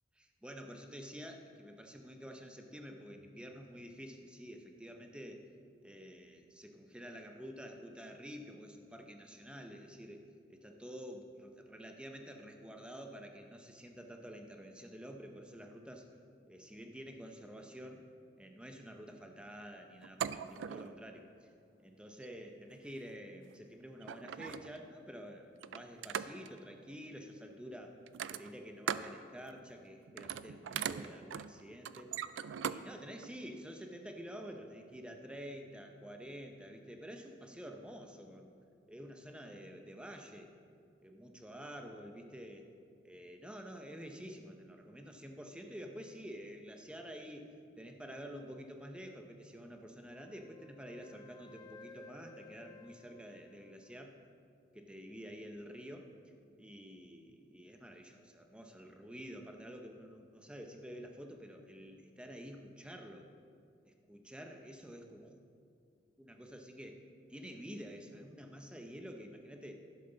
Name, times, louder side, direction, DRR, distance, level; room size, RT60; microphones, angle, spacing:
voice 1, 0.2-5.5 5.8-10.2 10.5-16.1 16.5-18.0 18.4-21.5 21.8-28.0 28.3-32.1 32.6-38.5 38.9-40.5 41.0-42.7 43.0-54.1 54.7-56.1 56.6-63.3 63.8-65.4 66.2-67.0 67.3-69.7, equal, 5° right, 4 dB, 0.7 m, -49 dB
sound 1, 20.0-21.0 22.1-22.4 23.5-23.6 24.0-24.9 25.6-26.6 28.1-29.2 29.5-29.8 30.1-32.8 33.2-33.3, right 8 dB, 85° right, 0.4 m, -40 dB
Wind instrument woodwind instrument, 50.1-54.3, left 3 dB, 20° left, 0.4 m, -57 dB
11.5 x 11.0 x 3.9 m, 2.3 s
head